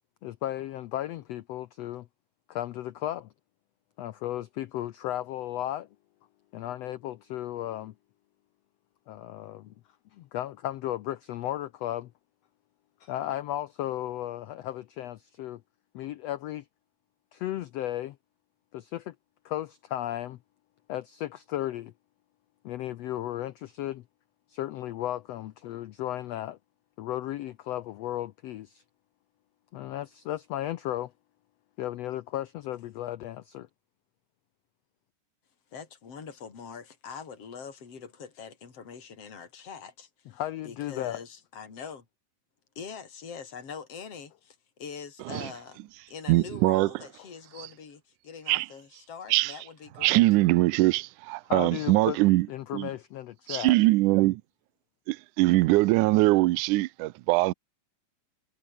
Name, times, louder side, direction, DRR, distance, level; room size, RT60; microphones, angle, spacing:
voice 1, 0.2-2.1 2.5-3.3 4.0-5.9 6.5-7.9 9.1-9.7 10.1-12.1 13.0-15.6 15.9-16.7 17.3-18.2 18.7-19.1 19.4-20.4 20.9-21.9 22.6-24.0 24.5-26.6 27.0-28.8 29.7-31.1 31.8-33.7 40.3-41.2 51.5-52.2 52.5-53.8, left 13 dB, 85° left, 1.4 m, -35 dB
voice 2, 35.7-42.0 42.8-50.2, left 6 dB, 45° left, 4.9 m, -43 dB
voice 3, 46.3-46.9 48.5-48.7 49.3-49.5 50.0-52.5 52.7-52.9 53.5-54.4 55.1-57.5, right 20 dB, 80° right, 2.0 m, -22 dB
omnidirectional pair, 3.9 m